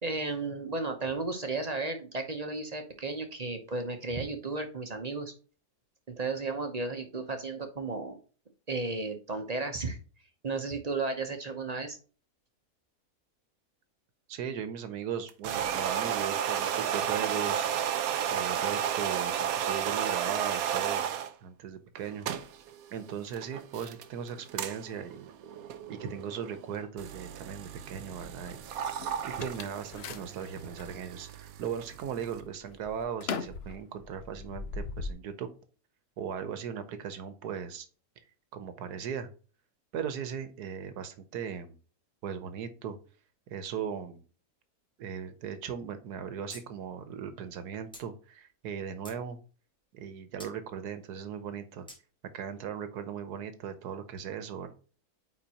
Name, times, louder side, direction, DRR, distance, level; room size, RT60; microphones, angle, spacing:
voice 1, 0.0-5.3 6.2-8.2 8.7-10.0 10.4-12.0, right 3 dB, 35° right, 6 dB, 0.7 m, -34 dB
voice 2, 14.3-17.9 18.3-21.1 21.4-22.3 22.5-22.6 22.9-25.3 25.9-28.6 29.2-35.5 36.2-37.9 38.5-39.3 39.9-41.7 42.2-43.0 43.5-44.2 45.0-49.4 49.9-51.9 52.3-54.7, right 7 dB, 90° right, 10 dB, 1.4 m, -38 dB
sound 1, 15.3-21.3 22.0-32.4, right 9 dB, 75° right, 1.0 m, -33 dB
sound 2, 28.2-30.9 31.5-32.0 32.3-35.1, left 5 dB, 60° left, 0.7 m, -40 dB
sound 3, 46.5-46.6 46.9-47.0 47.9-48.1 48.7-49.2 50.4-50.5 51.9-52.0, equal, 5° left, 1.5 m, -47 dB
9.1 x 4.2 x 2.9 m, 0.37 s
omnidirectional pair, 1.6 m